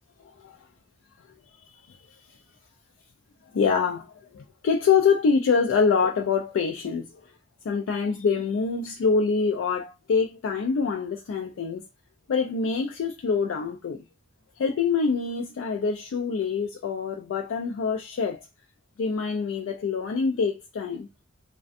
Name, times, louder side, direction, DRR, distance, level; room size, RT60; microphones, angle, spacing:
voice 1, 0.2-0.6 1.6-2.0 3.5-7.3 7.6-11.9 12.3-14.0 14.6-18.5 19.0-21.1, left 5 dB, 85° left, 0.3 m, -25 dB
2.4 x 2.2 x 2.4 m
head